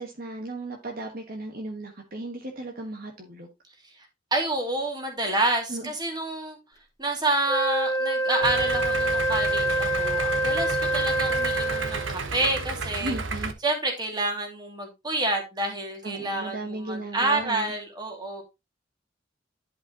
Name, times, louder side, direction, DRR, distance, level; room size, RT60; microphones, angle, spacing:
voice 1, 0.0-3.5 5.7-5.9 13.0-13.5 16.0-17.7, right 2 dB, 50° right, 2 dB, 1.5 m, -35 dB
voice 2, 4.3-6.6 7.0-13.1 13.6-18.4, right 2 dB, 25° right, 2 dB, 2.6 m, -28 dB
Wind instrument woodwind instrument, 7.5-12.2, right 1 dB, 20° left, 1.5 m, -26 dB
Idling, 8.4-13.5, right 3 dB, 85° right, 1.1 m, -32 dB
11.0 x 5.5 x 2.9 m, 0.23 s
head